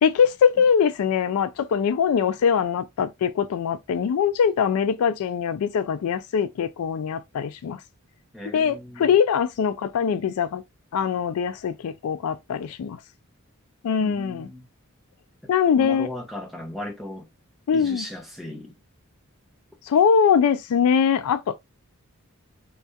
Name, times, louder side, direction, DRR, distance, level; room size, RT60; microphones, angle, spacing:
voice 1, 0.0-7.8 8.5-10.6 10.9-13.0 13.8-14.5 15.5-16.1 17.7-18.0 19.9-21.6, left 7 dB, 70° left, 0.3 m, -22 dB
voice 2, 8.3-9.1 14.0-14.7 15.4-15.5 15.8-17.3 17.7-18.8, left 1 dB, ahead, 0.8 m, -36 dB
3.3 x 2.3 x 2.7 m
head